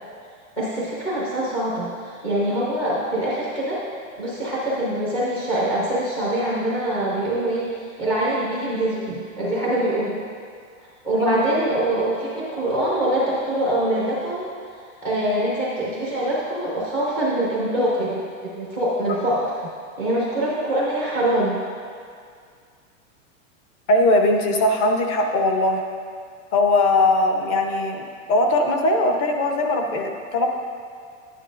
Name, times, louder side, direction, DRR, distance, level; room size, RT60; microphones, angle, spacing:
voice 1, 0.6-3.8 4.2-10.2 11.0-14.5 15.0-19.5 20.0-21.6, right 1 dB, 5° left, -7 dB, 0.3 m, -24 dB
voice 2, 11.1-11.5 23.9-25.8 26.5-28.0 28.3-30.5, left 2 dB, 30° left, 3 dB, 0.7 m, -20 dB
10.5 x 9.1 x 2.5 m, 2.2 s
supercardioid pair, 165°, 39 cm